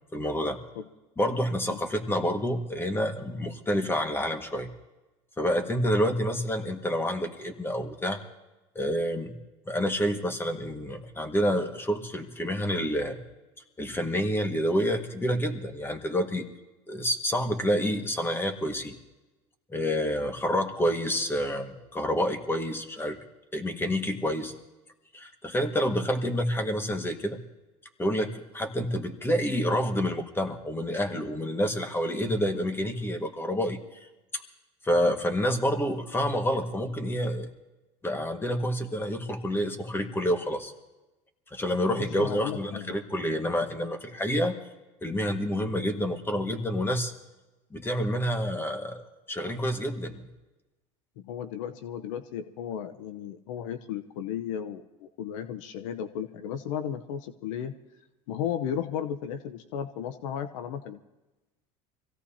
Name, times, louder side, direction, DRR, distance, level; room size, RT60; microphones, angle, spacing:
voice 1, 0.1-0.6 1.2-4.7 5.4-8.2 8.7-9.3 9.7-13.2 13.8-16.4 16.9-18.9 19.7-23.2 23.5-24.5 25.1-27.4 28.0-34.1 34.3-34.4 34.8-37.5 38.0-40.7 41.5-44.5 45.0-47.1 47.7-49.0 49.3-50.3, equal, 15° left, 5 dB, 1.8 m, -28 dB
voice 2, 41.9-43.0 51.2-57.7 58.3-61.0, left 9 dB, 85° left, 9 dB, 0.9 m, -34 dB
25.0 x 16.5 x 2.9 m, 1.1 s
supercardioid pair, 100°, 16 cm